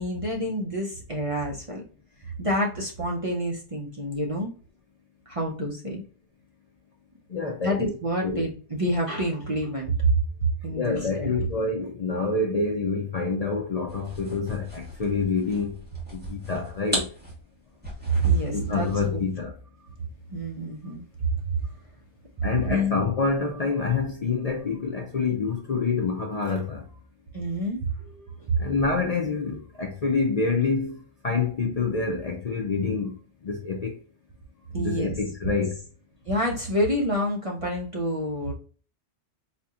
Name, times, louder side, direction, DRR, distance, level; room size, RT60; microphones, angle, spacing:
voice 1, 0.0-1.8 2.4-4.5 5.3-6.0 7.6-9.9 10.6-11.4 18.1-19.2 20.3-21.0 21.3-21.5 22.6-22.9 27.3-28.6 34.7-35.1 35.4-35.5 36.3-38.5, right 1 dB, 35° right, 0.6 m, -28 dB
voice 2, 7.3-7.9 8.2-8.5 10.7-15.8 16.1-17.1 18.5-19.5 22.4-26.8 28.6-33.1 33.4-34.0 34.8-35.8, left 4 dB, 45° left, 0.6 m, -27 dB
sound 1, 13.9-19.3, right 1 dB, 10° right, 1.4 m, -37 dB
4.2 x 2.8 x 2.4 m
omnidirectional pair, 1.2 m